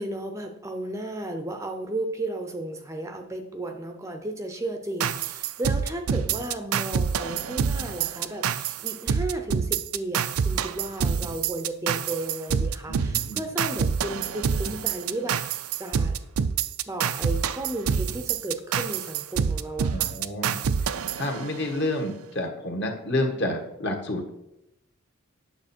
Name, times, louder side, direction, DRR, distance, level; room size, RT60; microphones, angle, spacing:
voice 1, 0.0-16.1 16.9-20.1, right 1 dB, 15° right, 5 dB, 0.6 m, -34 dB
sound 1, 5.0-21.9, right 7 dB, 80° right, 0.4 m, -27 dB
voice 2, 12.9-13.4 19.9-24.3, left 1 dB, 50° left, 2 dB, 1.5 m, -30 dB
8.9 x 6.6 x 4.3 m, 0.86 s
head